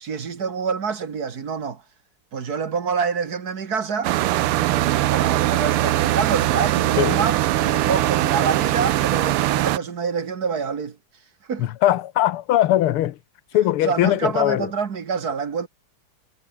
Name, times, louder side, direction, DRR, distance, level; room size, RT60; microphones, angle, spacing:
voice 1, 0.0-1.8 2.3-4.1 5.1-11.0 11.5-11.7 13.8-15.7, right 6 dB, 50° right, 2.0 m, -26 dB
sound 1, 4.0-9.8, right 15 dB, 85° right, 1.6 m, -21 dB
voice 2, 11.6-13.2 13.5-14.7, left 13 dB, 85° left, 1.8 m, -20 dB
omnidirectional pair, 2.4 m